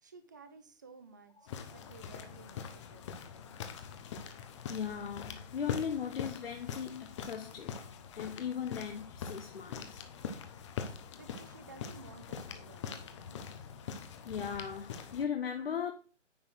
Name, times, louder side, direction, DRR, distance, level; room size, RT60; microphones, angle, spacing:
voice 1, 0.0-3.2 11.2-13.4, right 4 dB, 15° right, 0.4 m, -55 dB
sound 1, 1.5-15.3, left 7 dB, 25° left, 0.9 m, -43 dB
voice 2, 4.0-4.4 4.7-7.7 8.1-10.0 14.2-15.9, left 7 dB, 50° left, 1.0 m, -38 dB
9.5 x 4.3 x 6.3 m
figure-of-eight pair, 145°, 37 cm